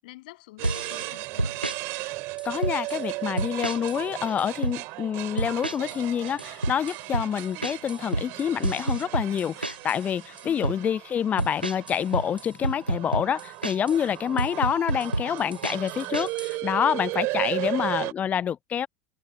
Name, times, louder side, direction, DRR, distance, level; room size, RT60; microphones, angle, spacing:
voice 1, 0.0-1.6 10.4-10.9 17.3-17.9, left 20 dB, 60° left, 7.6 m, -47 dB
sound 1, 0.6-18.1, right 23 dB, 50° right, 5.5 m, -36 dB
sound 2, 0.6-1.1 1.4-1.8 2.4-3.0 3.4-4.0 4.3-4.8 5.4-6.0 6.2-10.0 10.4-10.8 11.4-14.0 14.4-16.5, right 2 dB, 85° right, 2.5 m, -29 dB
voice 2, 2.4-18.9, left 8 dB, 30° left, 0.5 m, -27 dB
figure-of-eight pair, 75°, 5 cm